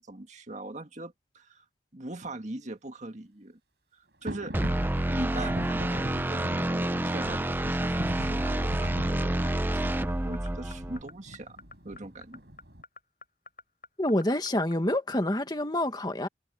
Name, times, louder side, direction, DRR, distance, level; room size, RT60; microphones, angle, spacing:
voice 1, 0.0-1.6 1.9-3.6 3.9-4.5 5.1-11.6 11.8-12.4, right 2 dB, 40° right, 1.9 m, -41 dB
sound 1, 4.2-14.7, left 3 dB, 45° left, 5.7 m, -46 dB
sound 2, 4.3-12.8, equal, 65° right, 7.5 m, -41 dB
sound 3, 4.5-11.0, right 1 dB, 10° right, 0.5 m, -28 dB
voice 2, 14.0-16.3, left 1 dB, 20° left, 1.7 m, -27 dB
head